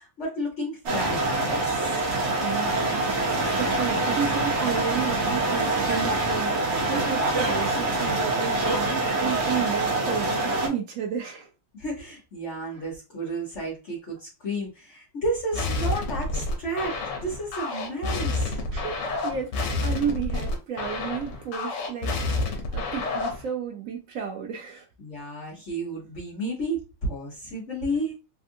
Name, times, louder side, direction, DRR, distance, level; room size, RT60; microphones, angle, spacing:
voice 1, 0.0-2.0 11.7-18.6 25.0-28.1, right 1 dB, 45° left, 1.3 m, -32 dB
sound 1, 0.8-10.7, right 2 dB, 50° right, 0.9 m, -25 dB
voice 2, 2.4-11.5 12.7-12.8 18.7-24.9, right 7 dB, 75° right, 0.7 m, -32 dB
sound 2, 15.5-23.5, left 2 dB, 70° left, 1.4 m, -29 dB
3.6 x 2.5 x 2.6 m
omnidirectional pair, 2.0 m